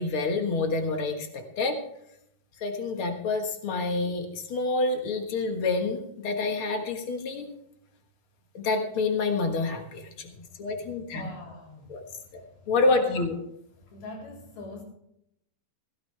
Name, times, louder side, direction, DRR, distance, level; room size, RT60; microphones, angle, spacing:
voice 1, 0.0-1.8 2.6-7.5 8.5-10.3 10.6-11.3 11.9-12.0 12.3-12.4 12.7-13.3, left 3 dB, 50° left, 5 dB, 1.7 m, -28 dB
voice 2, 10.7-12.0 12.3-13.3 13.8-14.8, left 2 dB, 85° left, -1 dB, 5.6 m, -44 dB
16.0 x 15.0 x 3.3 m, 0.75 s
omnidirectional pair, 4.3 m